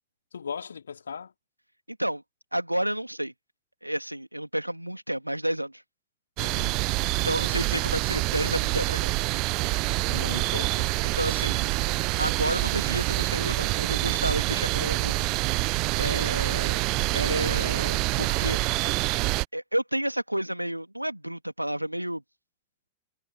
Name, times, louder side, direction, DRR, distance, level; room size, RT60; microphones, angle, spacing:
voice 1, 0.3-1.3 6.4-6.8 10.0-10.9, left 6 dB, 70° left, 3.2 m, -37 dB
voice 2, 1.9-2.2 2.5-3.3 3.8-5.8 7.2-9.1 11.1-11.7 12.2-15.2 16.0-16.8 17.1-18.6 19.2-22.2, right 1 dB, 90° right, 2.9 m, -30 dB
sound 1, 6.4-19.4, right 25 dB, 40° right, 0.6 m, -26 dB
figure-of-eight pair, 90°, 0 cm